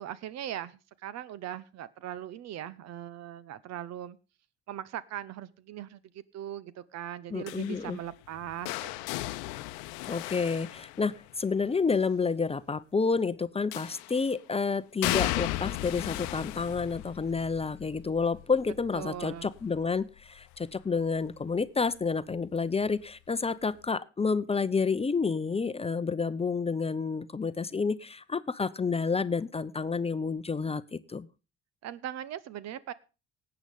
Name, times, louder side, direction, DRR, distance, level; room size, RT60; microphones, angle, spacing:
voice 1, 0.0-4.2 4.7-9.3 18.9-19.5 31.8-32.9, right 11 dB, 55° right, 19 dB, 1.0 m, -40 dB
voice 2, 7.3-8.0 10.0-31.3, left 4 dB, 20° left, 15 dB, 0.7 m, -29 dB
sound 1, 7.5-11.5 13.7-14.3 15.0-20.8 21.2-21.6 22.8-22.9, left 18 dB, 70° left, 0.8 m, -36 dB
18.0 x 8.2 x 5.3 m, 0.33 s
hypercardioid pair, 55°, 31 cm